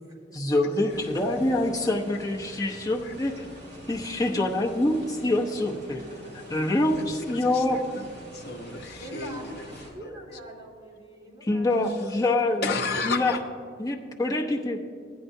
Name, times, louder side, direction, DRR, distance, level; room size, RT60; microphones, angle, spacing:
voice 1, 0.3-3.5 3.9-6.0 6.3-7.8 11.4-12.7 13.0-13.4 13.8-14.8, left 2 dB, 20° left, -2 dB, 0.9 m, -25 dB
sound 1, 0.9-9.9, equal, 40° right, 3.1 m, -46 dB
voice 2, 6.9-9.7 10.0-10.4 12.6-13.4, left 4 dB, 55° left, 1 dB, 0.8 m, -33 dB
voice 3, 9.0-11.7 12.0-12.5, right 1 dB, 20° right, -4 dB, 2.0 m, -44 dB
15.5 x 10.0 x 2.7 m, 2.1 s
head